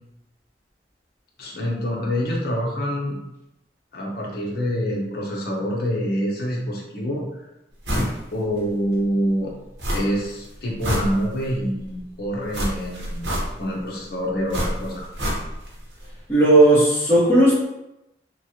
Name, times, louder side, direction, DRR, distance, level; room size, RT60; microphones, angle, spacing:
voice 1, 1.4-3.2 3.9-7.5 8.3-9.5 9.9-13.3 13.6-15.0, equal, 55° left, -3 dB, 0.7 m, -26 dB
sound 1, 7.8-8.2 8.6-8.7 9.8-10.3 10.6-11.6 12.5-13.8 14.5-15.8 16.0-16.1, equal, 85° right, 0.9 m, -26 dB
voice 2, 16.3-17.7, right 1 dB, 15° left, -10 dB, 1.3 m, -15 dB
3.0 x 2.3 x 2.7 m, 0.90 s
head